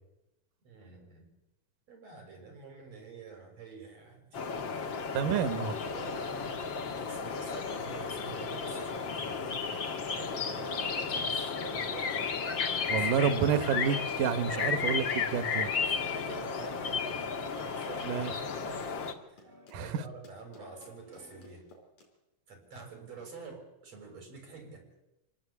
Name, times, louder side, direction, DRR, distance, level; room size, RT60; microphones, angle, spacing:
voice 1, 0.6-1.3 1.9-4.9 5.3-6.5 6.9-9.6 10.1-12.4 12.9-13.2 15.6-17.1 17.6-21.6 22.5-24.8, right 5 dB, 50° right, 3 dB, 7.8 m, -48 dB
sound 1, 4.3-19.1, left 5 dB, 45° left, 2.0 m, -33 dB
voice 2, 5.1-5.7 12.9-15.7 18.1-18.3 19.7-19.9, right 7 dB, 80° right, 12 dB, 2.9 m, -29 dB
Run, 5.6-22.1, left 1 dB, 80° left, 6.5 m, -56 dB
sound 2, 12.0-21.6, equal, 15° right, 7.1 m, -58 dB
26.5 x 18.5 x 8.6 m, 0.96 s
omnidirectional pair, 3.7 m